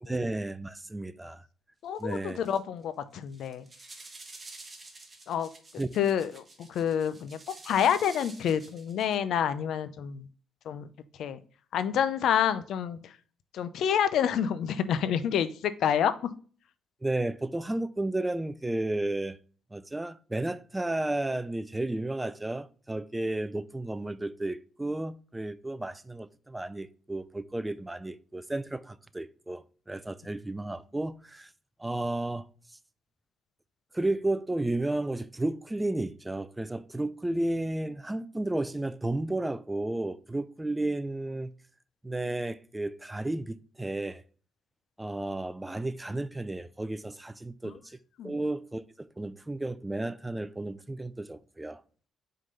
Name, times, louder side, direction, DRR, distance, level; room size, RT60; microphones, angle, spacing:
voice 1, 0.0-1.5 2.0-2.4 5.8-5.9 17.0-19.4 19.7-31.5 31.8-32.4 33.9-41.5 42.0-44.2 45.0-48.0 48.2-51.8, right 2 dB, 10° right, 0.4 m, -33 dB
voice 2, 1.8-3.7 5.3-5.5 6.0-7.4 7.6-10.3 10.7-10.9 11.2-11.4 11.7-13.1 13.5-16.1 47.6-47.8 48.2-48.4, left 8 dB, 75° left, 0.6 m, -28 dB
sound 1, 2.0-2.1 2.4-2.8 3.2-9.2, right 2 dB, 30° right, 1.2 m, -49 dB
5.1 x 3.9 x 5.4 m
cardioid pair, 90°, 0 cm